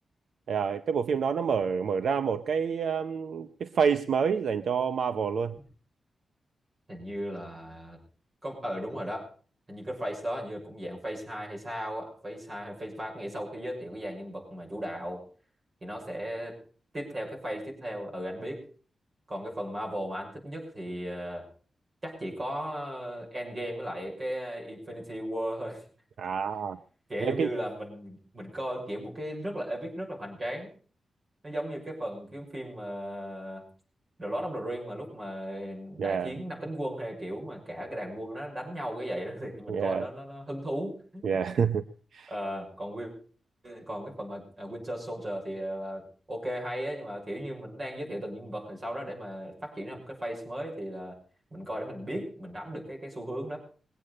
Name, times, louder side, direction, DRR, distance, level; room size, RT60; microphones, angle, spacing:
voice 1, 0.5-5.6 26.2-26.8 27.2-27.5 36.0-36.3 39.7-40.1 41.2-41.8 42.1-42.3, right 6 dB, 80° right, 10 dB, 0.7 m, -28 dB
voice 2, 6.9-8.0 8.4-9.3 9.7-15.2 15.8-16.6 16.9-18.6 19.3-21.4 22.0-25.8 27.1-30.7 31.4-33.7 34.2-41.4 42.3-43.1 43.6-51.2 51.5-53.6, equal, 30° right, -1 dB, 6.1 m, -36 dB
22.0 x 8.7 x 6.6 m, 0.43 s
wide cardioid pair, 145°, 0 cm